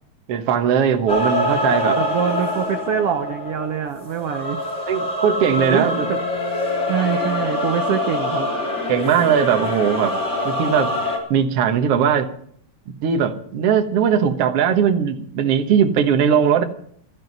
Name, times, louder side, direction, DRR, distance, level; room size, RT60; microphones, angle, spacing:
voice 1, 0.3-2.0 4.9-6.1 8.9-10.1 10.4-10.9 11.3-12.3 12.9-16.6, right 8 dB, 55° right, 6 dB, 1.9 m, -19 dB
sound 1, 1.1-11.2, left 1 dB, 20° left, 3.2 m, -24 dB
voice 2, 1.9-4.6 5.7-6.2 6.9-8.5, right 8 dB, 90° right, 8 dB, 1.3 m, -24 dB
sound 2, 5.5-9.9, left 9 dB, 55° left, 2.1 m, -39 dB
15.5 x 13.0 x 5.4 m, 0.63 s
omnidirectional pair, 3.8 m